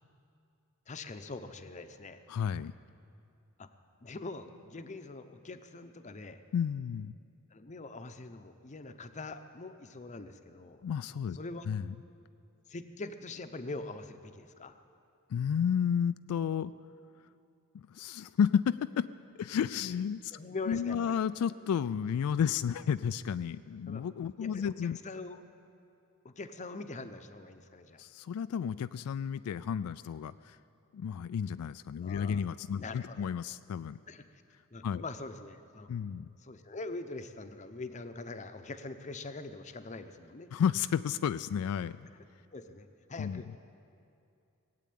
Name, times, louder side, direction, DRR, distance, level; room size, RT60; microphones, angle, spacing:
voice 1, 0.9-2.2 3.6-3.7 4.0-6.4 7.5-10.8 11.3-11.7 12.7-14.8 20.3-21.2 23.9-24.0 24.4-25.4 26.2-28.0 32.0-32.4 32.8-33.3 34.1-34.3 34.7-35.9 36.4-40.5 42.1-42.2 42.5-43.6, left 3 dB, 35° left, 9 dB, 0.7 m, -43 dB
voice 2, 2.3-2.8 6.5-7.1 10.8-11.4 11.7-11.9 15.3-16.7 17.7-19.1 19.4-20.4 20.7-25.0 28.0-30.6 30.9-34.0 34.8-35.0 35.9-36.3 40.5-42.1 43.2-43.4, left 7 dB, 80° left, 14 dB, 0.3 m, -32 dB
19.0 x 8.4 x 8.6 m, 2.6 s
head